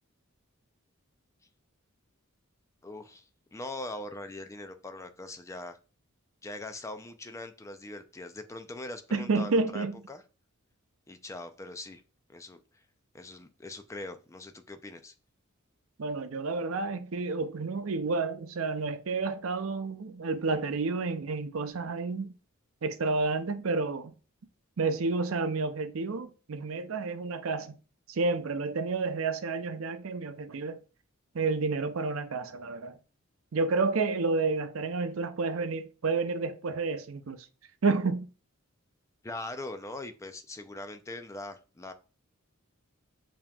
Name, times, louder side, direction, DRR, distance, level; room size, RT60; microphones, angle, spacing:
voice 1, 2.8-5.8 6.4-10.2 11.1-12.0 12.3-12.6 13.1-15.1 39.2-41.9, left 2 dB, 15° left, 0.4 m, -41 dB
voice 2, 9.1-10.0 16.0-22.3 22.8-24.1 24.8-27.8 28.1-30.8 31.3-33.0 33.5-37.4 37.8-38.3, right 3 dB, 70° right, 0.5 m, -30 dB
6.9 x 2.9 x 2.3 m
head